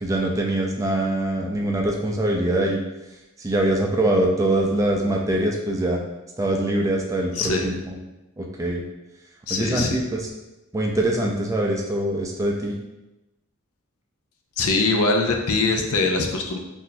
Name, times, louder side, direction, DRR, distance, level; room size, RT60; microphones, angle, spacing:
voice 1, 0.0-2.8 3.4-6.0 6.4-8.0 8.4-8.8 9.5-10.2 10.7-12.7, right 1 dB, 15° right, 0 dB, 0.3 m, -23 dB
voice 2, 7.3-7.7 9.5-10.0 14.6-16.6, left 3 dB, 85° left, 3 dB, 0.5 m, -22 dB
5.7 x 2.6 x 2.2 m, 1.0 s
head